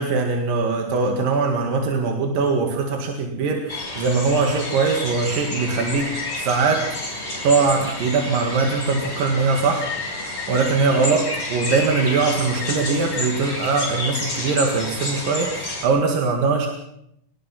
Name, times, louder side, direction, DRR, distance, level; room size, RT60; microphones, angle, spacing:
voice 1, 0.0-16.7, right 4 dB, 55° right, 3 dB, 2.8 m, -22 dB
sound 1, 3.7-15.8, left 2 dB, 15° left, 5.1 m, -30 dB
23.5 x 19.0 x 5.8 m, 0.76 s
omnidirectional pair, 5.9 m